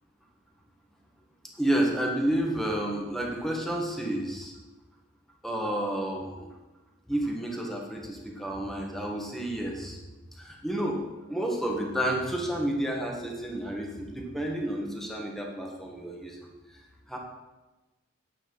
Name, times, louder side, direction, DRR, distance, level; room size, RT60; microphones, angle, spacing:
voice 1, 1.6-4.5 5.4-6.5 7.1-10.0 10.4-11.0 11.3-16.5 17.1-17.2, right 1 dB, ahead, -1 dB, 1.8 m, -30 dB
9.2 x 8.8 x 4.9 m, 1.1 s
head